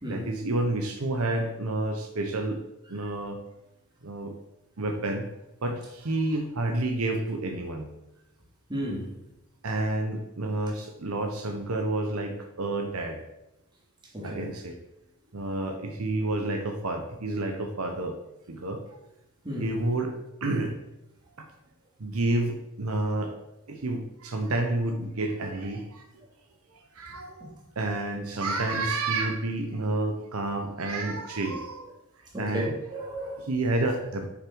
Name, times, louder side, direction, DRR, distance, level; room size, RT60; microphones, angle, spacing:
voice 1, 0.1-2.6 2.9-3.4 4.0-4.3 4.8-5.3 5.6-7.9 9.6-13.2 14.2-14.8 15.3-18.2 18.5-18.8 19.6-20.8 21.4-21.5 22.0-23.3 23.7-26.0 26.9-31.9 32.3-32.7 33.4-34.3, right 2 dB, 85° right, 5 dB, 0.9 m, -29 dB
voice 2, 8.7-9.1 14.1-14.5 19.4-19.7 32.3-33.5, right 1 dB, 20° right, -3 dB, 2.2 m, -33 dB
7.1 x 6.5 x 4.6 m, 0.91 s
head